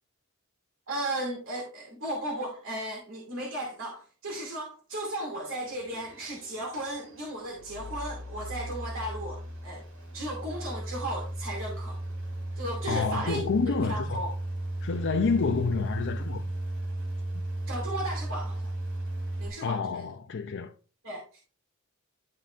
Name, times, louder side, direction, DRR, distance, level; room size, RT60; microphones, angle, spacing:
voice 1, 0.9-9.8 10.1-12.0 12.6-14.3 17.7-18.7 19.4-20.0 21.0-21.4, right 1 dB, 65° right, 2.5 m, -35 dB
sound 1, 5.4-19.5, right 1 dB, 80° right, 3.5 m, -36 dB
voice 2, 12.9-14.2 14.8-16.6 19.6-20.7, left 5 dB, 55° left, 0.5 m, -29 dB
11.5 x 5.7 x 2.5 m
head